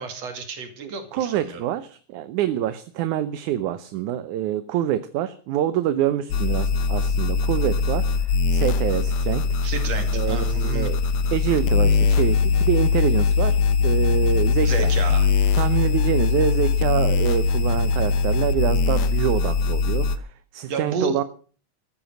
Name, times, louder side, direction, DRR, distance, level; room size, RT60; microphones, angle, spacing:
voice 1, 0.0-1.6 9.6-10.9 14.6-15.3 20.7-21.2, right 4 dB, 55° right, 7 dB, 3.4 m, -31 dB
voice 2, 0.8-9.4 10.1-11.0 11.3-13.6 13.8-14.9 15.6-20.3 20.5-21.2, right 11 dB, 75° right, 12 dB, 2.2 m, -26 dB
sound 1, 6.3-20.2, left 5 dB, 65° left, 2.1 m, -21 dB
14.5 x 10.0 x 7.7 m, 0.43 s
omnidirectional pair, 3.6 m